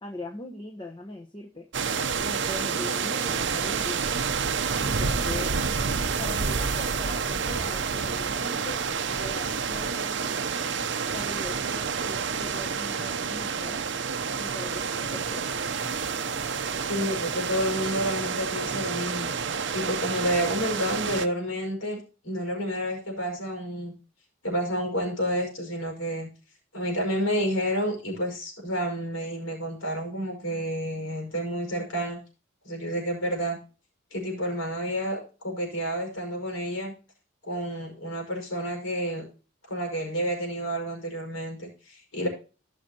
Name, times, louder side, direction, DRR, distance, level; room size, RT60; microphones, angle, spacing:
voice 1, 0.0-1.7 2.2-4.0 4.8-10.3 11.1-13.8 14.4-15.5, left 1 dB, 20° left, 2 dB, 1.1 m, -40 dB
sound 1, 1.7-21.3, right 5 dB, 55° right, 0.7 m, -29 dB
voice 2, 16.9-19.3 19.7-23.9 24.4-26.3 26.7-32.2 32.6-33.6 34.1-36.9 37.4-39.3 39.7-42.3, equal, 70° left, 1 dB, 5.3 m, -30 dB
16.5 x 6.3 x 2.9 m, 0.34 s
head